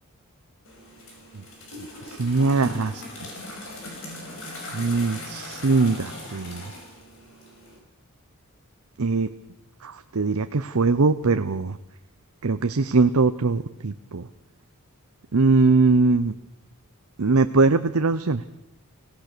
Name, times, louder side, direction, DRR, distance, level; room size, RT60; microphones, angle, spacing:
sound 1, 0.6-7.8, left 1 dB, 65° left, 6.0 m, -39 dB
voice 1, 2.1-3.0 4.7-6.7 9.0-9.3 9.8-11.8 12.4-14.3 15.3-16.3 17.2-18.4, right 3 dB, 70° right, 10 dB, 0.7 m, -21 dB
23.5 x 16.5 x 6.8 m, 0.89 s
head